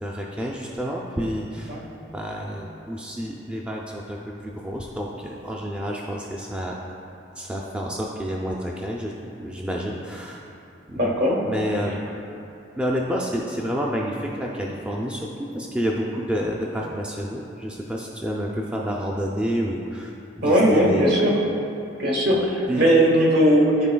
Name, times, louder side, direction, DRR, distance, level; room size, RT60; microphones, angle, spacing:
voice 1, 0.0-1.8 2.1-6.8 7.4-9.1 9.4-10.4 10.9-11.1 11.4-12.1 12.8-15.3 15.5-21.2 22.3-22.8, equal, 5° right, -2 dB, 0.4 m, -29 dB
voice 2, 10.9-11.4 20.4-21.3 22.0-23.9, equal, 55° right, -2 dB, 1.2 m, -19 dB
13.0 x 4.4 x 2.3 m, 2.7 s
head